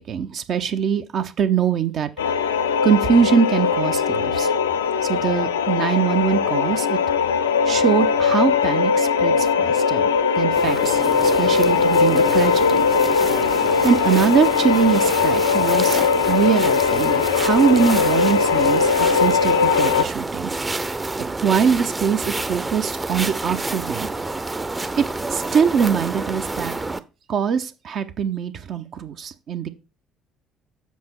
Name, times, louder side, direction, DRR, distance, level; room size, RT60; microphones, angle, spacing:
voice 1, 0.0-2.1 2.8-4.5 5.1-7.0 7.7-10.1 10.4-11.0 11.4-12.9 13.8-16.0 16.3-20.5 21.4-24.1 25.0-26.7 27.3-29.7, right 7 dB, 50° right, 8 dB, 0.8 m, -22 dB
sound 1, 2.2-20.0, left 6 dB, 75° left, 0.5 m, -20 dB
sound 2, 10.6-27.0, right 2 dB, 20° right, 0.7 m, -29 dB
7.5 x 5.9 x 4.4 m, 0.30 s
figure-of-eight pair, 50°, 0 cm